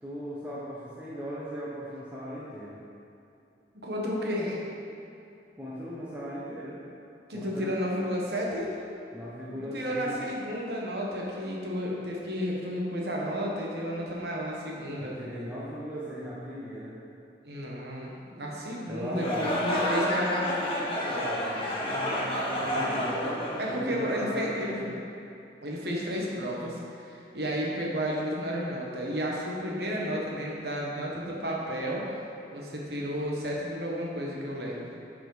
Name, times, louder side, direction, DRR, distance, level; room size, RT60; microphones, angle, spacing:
voice 1, 0.0-2.8 5.6-6.8 7.3-7.8 9.1-10.2 15.0-16.9 18.8-22.0 22.6-24.9, equal, 10° right, -9 dB, 0.9 m, -38 dB
voice 2, 3.8-4.6 7.3-8.8 9.7-15.2 17.4-20.4 21.9-23.0 23.6-24.9 25.6-32.0 32.5-34.9, equal, 65° right, -3 dB, 1.2 m, -32 dB
sound 1, 19.1-24.3, equal, 30° left, 1.1 m, -30 dB
8.7 x 4.9 x 4.0 m, 2.6 s
head